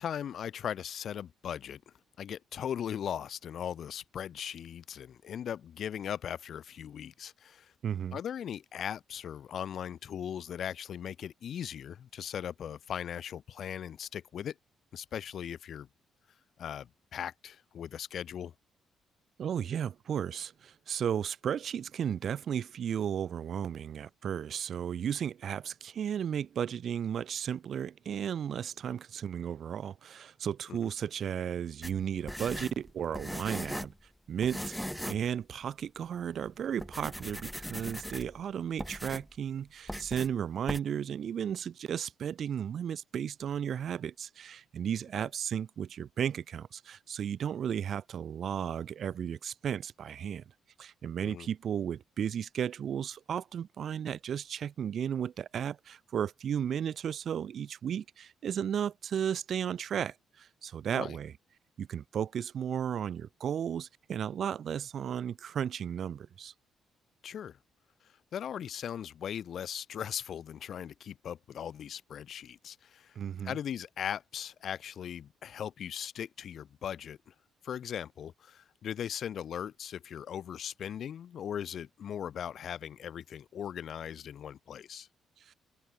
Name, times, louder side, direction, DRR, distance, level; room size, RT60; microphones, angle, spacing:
voice 1, 0.0-1.8 2.2-7.7 8.1-14.6 14.9-15.9 16.6-18.5 30.7-30.8 45.2-45.3 51.2-51.5 60.9-61.2 67.2-67.6 68.3-73.1 73.4-77.3 77.6-85.1, left 9 dB, 60° left, 4.5 m, -39 dB
voice 2, 7.8-8.2 19.4-33.9 34.3-50.4 50.8-61.3 61.8-66.5 73.2-73.6 85.5-85.6, right 8 dB, 60° right, 1.7 m, -34 dB
sound 1, 31.8-34.0 34.4-35.3 35.6-35.7 36.3-36.5 36.8-38.4 38.8-39.3 39.9-40.3 40.7-40.8, equal, ahead, 3.4 m, -39 dB
cardioid pair, 90°, 0 cm